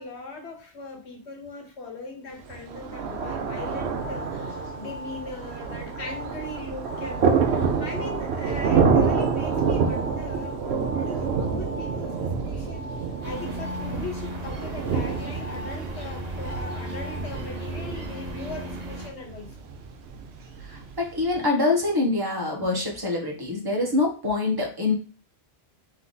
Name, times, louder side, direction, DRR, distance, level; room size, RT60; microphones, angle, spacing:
voice 1, 0.0-19.6, left 2 dB, 80° left, 3 dB, 1.3 m, -39 dB
Thunder, 2.5-21.4, right 5 dB, 75° right, 0.9 m, -28 dB
sound 1, 3.4-17.4, left 1 dB, 45° left, 1.6 m, -42 dB
sound 2, 13.2-19.1, equal, 45° right, 0.7 m, -36 dB
voice 2, 20.6-24.9, left 3 dB, 20° right, 0 dB, 1.1 m, -25 dB
3.4 x 3.2 x 3.8 m, 0.35 s
omnidirectional pair, 1.1 m